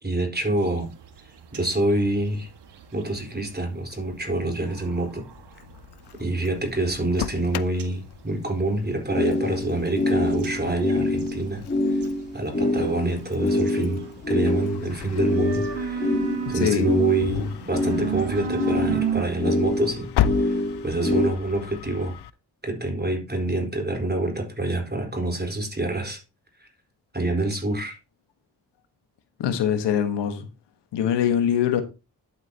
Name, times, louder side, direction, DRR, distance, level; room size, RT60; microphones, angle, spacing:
voice 1, 0.0-0.9 1.5-2.5 2.9-5.2 6.2-12.0 12.3-16.2 16.5-20.1 20.4-22.2 22.6-26.2 27.1-28.0, right 2 dB, 25° right, 4.4 m, -27 dB
sound 1, 0.6-19.2, right 7 dB, 75° right, 1.9 m, -37 dB
Engine starting, 5.3-22.3, left 10 dB, 70° left, 0.7 m, -36 dB
sound 2, 6.2-6.3 7.1-7.2 9.1-21.3, left 2 dB, 25° left, 3.4 m, -25 dB
voice 2, 16.6-17.0 29.4-30.5 30.9-31.8, left 9 dB, 90° left, 1.5 m, -23 dB
11.0 x 9.0 x 2.9 m
supercardioid pair, 45°, 41 cm